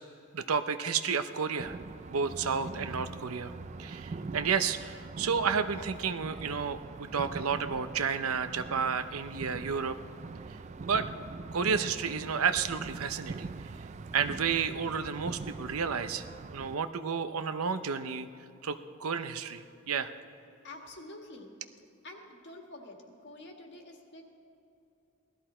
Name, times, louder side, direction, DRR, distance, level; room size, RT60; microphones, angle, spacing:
voice 1, 0.3-1.8 2.1-3.5 3.8-10.0 10.8-11.1 11.5-13.5 14.1-16.2 16.5-18.3 18.6-20.1, right 6 dB, 85° right, 11 dB, 0.6 m, -31 dB
sound 1, 1.6-16.7, right 3 dB, 30° right, 0.3 m, -43 dB
voice 2, 20.6-21.5 22.0-24.2, left 2 dB, 50° left, 2 dB, 1.7 m, -47 dB
18.0 x 13.5 x 4.4 m, 2.8 s
head